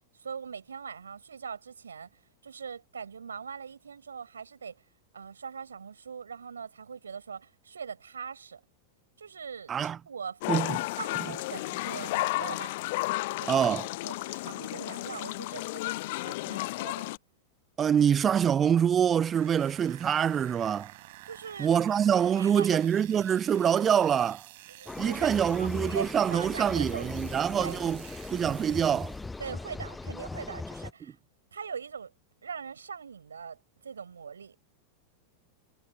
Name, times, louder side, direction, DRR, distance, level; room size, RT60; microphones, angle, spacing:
voice 1, 0.1-4.8 5.1-8.6 9.2-10.4 11.0-12.7 13.4-13.8 14.0-17.1 21.2-21.7 22.4-22.8 24.7-27.8 29.4-31.2 31.5-32.1 32.4-34.6, right 6 dB, 70° right, 7.0 m, -41 dB
sound 1, 10.4-17.2, left 21 dB, 50° left, 0.8 m, -33 dB
voice 2, 13.5-13.8 17.8-20.9 21.6-24.4 25.0-28.0 28.3-29.1, right 8 dB, 25° right, 0.4 m, -25 dB
sound 2, 19.3-29.4, right 19 dB, 50° right, 4.7 m, -50 dB
sound 3, 24.9-30.9, left 3 dB, 10° left, 0.8 m, -39 dB
figure-of-eight pair, 90°, 0 cm